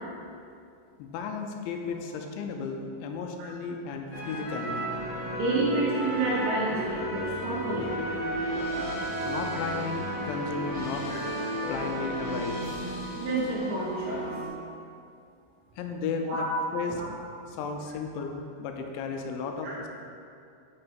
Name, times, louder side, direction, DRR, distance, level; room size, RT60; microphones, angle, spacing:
voice 1, 1.0-4.9 9.3-11.4 11.7-12.7 15.8-16.5 16.7-17.0 17.5-19.9, left 5 dB, 85° left, 4 dB, 3.0 m, -34 dB
sound 1, 4.1-14.5, right 1 dB, 70° left, 1.5 m, -33 dB
voice 2, 5.3-7.9 11.1-11.2 13.2-14.3 16.3-16.4 17.0-17.1 19.6-19.7, right 2 dB, 75° right, -7 dB, 4.1 m, -29 dB
8.8 x 5.5 x 4.1 m, 2.5 s
omnidirectional pair, 5.3 m